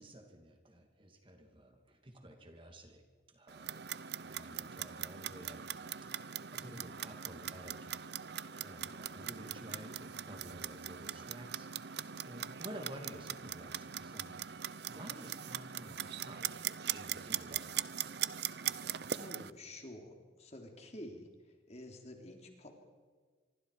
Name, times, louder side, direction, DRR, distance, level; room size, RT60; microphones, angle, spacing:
voice 1, 0.0-3.8 4.2-5.7 6.0-7.9 8.6-14.6 14.9-16.4 16.9-17.7, equal, 25° right, 4 dB, 2.4 m, -52 dB
Clock, 3.5-19.5, right 10 dB, 60° right, 0.7 m, -41 dB
voice 2, 18.6-22.7, left 1 dB, 35° left, 3 dB, 3.4 m, -50 dB
26.0 x 24.5 x 4.9 m, 1.5 s
head